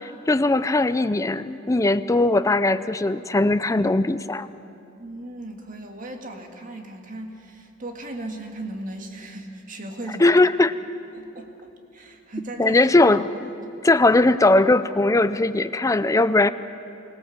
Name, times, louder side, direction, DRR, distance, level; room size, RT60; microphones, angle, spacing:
voice 1, 0.0-4.5 10.2-10.8 12.6-13.5 13.8-16.5, left 2 dB, 15° left, 13 dB, 0.5 m, -19 dB
voice 2, 5.0-10.3 11.1-12.9 13.6-13.7, right 1 dB, 45° right, 4 dB, 2.0 m, -37 dB
24.5 x 17.0 x 7.3 m, 2.7 s
head